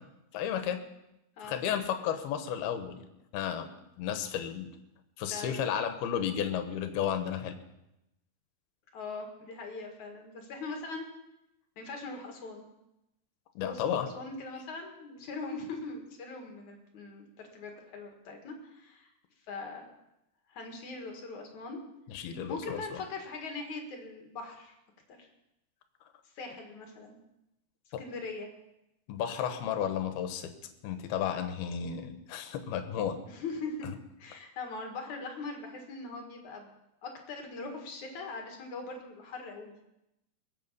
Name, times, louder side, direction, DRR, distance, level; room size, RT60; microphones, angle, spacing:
voice 1, 0.3-0.8 1.4-3.1 3.3-3.7 4.0-4.7 5.2-7.6 13.6-14.1 22.1-23.0 27.9-28.0 29.1-30.5 30.8-33.2 33.8-33.9, left 9 dB, 80° left, 8 dB, 3.0 m, -33 dB
voice 2, 8.9-11.1 11.8-12.6 13.6-19.1 19.5-19.9 20.5-21.8 22.5-24.7 25.2-25.3 26.3-27.2 28.0-28.5 33.3-33.9 34.2-36.7 37.0-39.7, left 3 dB, 55° left, 3 dB, 2.8 m, -41 dB
22.0 x 8.4 x 5.5 m, 0.88 s
omnidirectional pair, 4.6 m